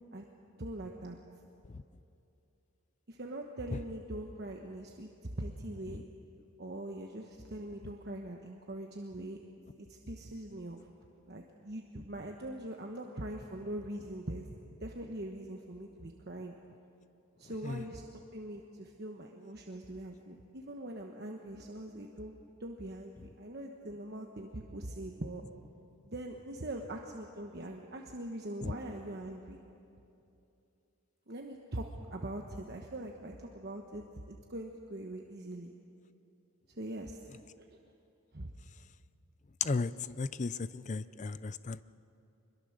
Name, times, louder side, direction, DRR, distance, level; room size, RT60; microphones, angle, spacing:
voice 1, 0.6-1.2 3.1-6.0 6.6-9.4 9.8-10.9 11.3-14.5 14.8-16.5 17.4-25.4 26.0-29.6 31.3-35.7 36.7-37.2 37.6-37.8 38.3-38.5, right 1 dB, 50° right, 2 dB, 1.2 m, -42 dB
voice 2, 39.6-41.8, left 4 dB, 35° left, 15 dB, 0.4 m, -35 dB
24.5 x 22.0 x 6.6 m, 2.7 s
head